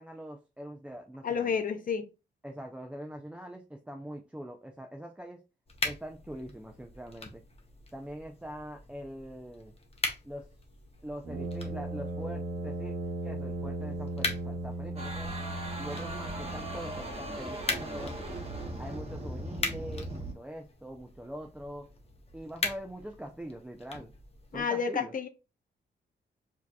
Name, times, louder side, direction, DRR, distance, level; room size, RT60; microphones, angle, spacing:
voice 1, 0.0-1.6 2.4-5.4 5.8-7.4 7.9-9.7 10.2-10.5 11.0-12.9 13.2-15.4 15.8-18.3 18.8-21.9 22.3-24.1 24.5-25.1, equal, 5° right, 0.4 m, -43 dB
voice 2, 1.2-2.1 24.5-25.3, left 6 dB, 50° left, 0.5 m, -30 dB
sound 1, 5.7-24.6, left 3 dB, 35° left, 0.9 m, -41 dB
Brass instrument, 11.2-17.1, right 2 dB, 75° right, 1.0 m, -37 dB
sound 2, 15.0-20.3, right 1 dB, 35° right, 1.1 m, -39 dB
4.8 x 2.8 x 2.3 m
wide cardioid pair, 115°, 18 cm